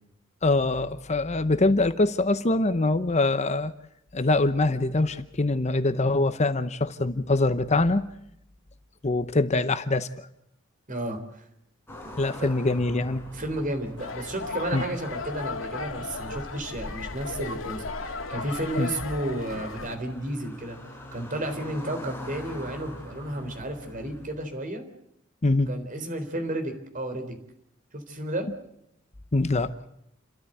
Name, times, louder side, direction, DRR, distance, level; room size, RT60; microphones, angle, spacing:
voice 1, 0.4-3.7 4.1-8.1 9.0-10.3 12.2-13.2 14.7-14.8 18.8-18.9 25.4-25.7 29.3-29.7, left 2 dB, 35° left, 12 dB, 0.8 m, -24 dB
voice 2, 10.9-11.4 12.4-12.5 13.3-20.8 21.1-24.8 25.7-27.4 27.9-28.5, right 1 dB, 40° right, 6 dB, 3.8 m, -32 dB
Mixed pass bys, 11.9-24.3, equal, 10° left, 5.6 m, -44 dB
sound 1, 14.0-20.0, left 3 dB, 80° left, 2.1 m, -35 dB
29.5 x 13.0 x 7.9 m, 0.78 s
head